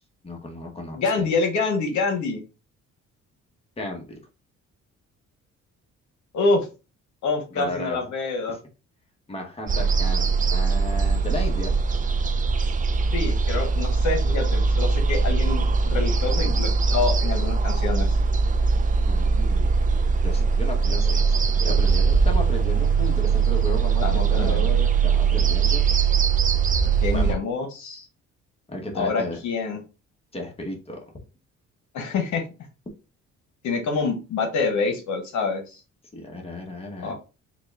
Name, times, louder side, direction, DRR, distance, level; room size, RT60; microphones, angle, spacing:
voice 1, 0.2-1.3 3.8-4.2 7.5-8.0 8.5-8.6 9.3-11.7 19.1-19.7 20.2-24.0 24.3-25.8 27.1-27.4 28.7-29.4 30.3-31.1 36.1-37.1, left 1 dB, 20° left, 1 dB, 1.2 m, -34 dB
voice 2, 0.9-2.4 6.3-6.7 7.2-8.6 13.1-18.2 24.0-24.7 27.0-28.1 28.9-29.8 31.9-32.4 33.6-35.8 37.0-37.1, left 4 dB, 70° left, 4 dB, 1.0 m, -26 dB
sound 1, 9.7-27.3, right 5 dB, 25° right, 0.4 m, -21 dB
4.0 x 2.4 x 3.4 m, 0.31 s
cardioid pair, 90°, 30 cm